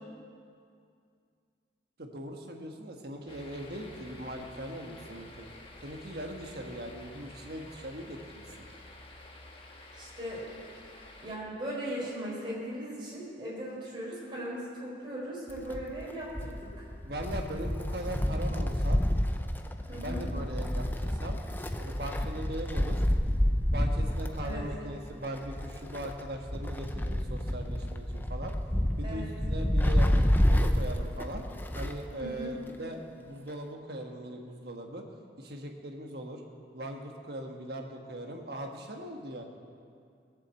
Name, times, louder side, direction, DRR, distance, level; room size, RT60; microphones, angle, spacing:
voice 1, 2.0-5.6 5.8-8.7 17.0-19.0 20.0-21.4 21.8-23.0 23.7-28.5 29.0-31.4 31.7-35.0 35.4-36.4 36.7-39.4, right 1 dB, 55° right, 2 dB, 1.5 m, -40 dB
sound 1, 3.3-11.4, left 2 dB, 30° left, 1.4 m, -50 dB
voice 2, 9.9-10.4 11.2-16.9 19.9-20.2 24.4-24.6 29.0-29.3 32.2-32.5, right 1 dB, 25° right, -6 dB, 4.7 m, -38 dB
Wind, 15.5-32.1 32.4-32.5 33.5-33.6, equal, 10° left, 0.6 m, -29 dB
18.5 x 7.6 x 7.7 m, 2.3 s
head